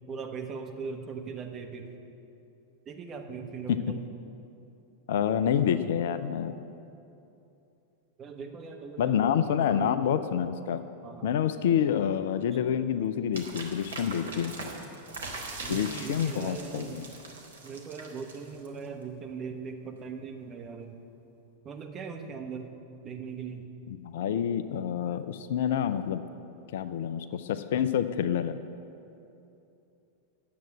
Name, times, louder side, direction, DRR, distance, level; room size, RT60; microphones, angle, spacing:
voice 1, 0.1-1.9 2.9-4.1 8.2-10.0 11.0-11.4 15.6-17.0 17.6-21.0 21.6-22.7 23.0-23.7, right 5 dB, 25° right, 3 dB, 1.2 m, -39 dB
voice 2, 5.1-6.5 9.0-10.8 11.2-14.5 15.7-17.1 23.9-26.2 26.7-28.6, left 9 dB, 55° left, 12 dB, 0.5 m, -28 dB
sound 1, 13.3-18.9, right 3 dB, 70° right, 1.6 m, -41 dB
10.0 x 7.7 x 8.8 m, 2.8 s
figure-of-eight pair, 90°, 0 cm